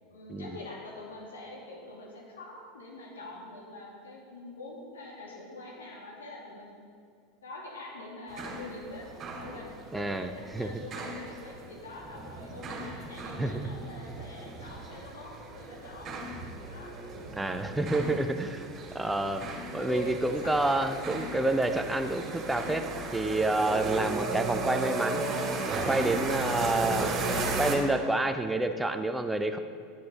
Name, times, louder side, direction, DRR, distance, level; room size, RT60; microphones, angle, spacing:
voice 1, 0.0-6.7 7.4-9.0 9.4-16.2 16.6-17.3 19.0-19.2 19.6-20.2 20.4-21.5 26.2-26.7, left 2 dB, 75° left, -3 dB, 2.8 m, -44 dB
sound 1, 8.3-27.8, right 3 dB, 35° right, 2.5 m, -35 dB
voice 2, 9.9-10.8 13.4-13.6 17.3-18.7 18.9-19.4 19.7-22.9 23.1-25.4 25.9-27.2 27.6-29.6, right 2 dB, 10° right, 7 dB, 0.8 m, -28 dB
12.0 x 10.5 x 4.1 m, 2.3 s
figure-of-eight pair, 80°, 0 cm